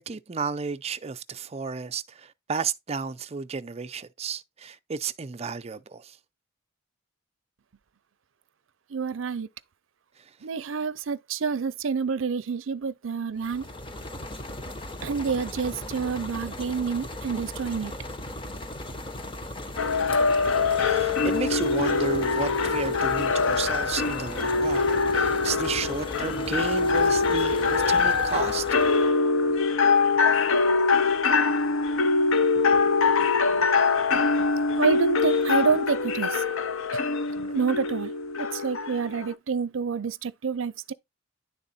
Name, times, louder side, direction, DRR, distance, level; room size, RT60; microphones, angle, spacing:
voice 1, 0.0-6.1 20.7-24.9 25.1-28.6, right 5 dB, 30° right, 0.5 m, -32 dB
voice 2, 8.9-9.5 10.4-13.6 15.0-17.9 32.6-32.8 33.5-33.6 34.4-34.5 34.8-36.4 37.4-38.1 38.4-40.9, right 5 dB, 75° right, 0.6 m, -28 dB
sound 1, 13.4-29.2, left 1 dB, 25° left, 0.8 m, -37 dB
sound 2, 19.8-39.3, left 4 dB, 85° left, 0.6 m, -23 dB
10.5 x 3.7 x 4.2 m
head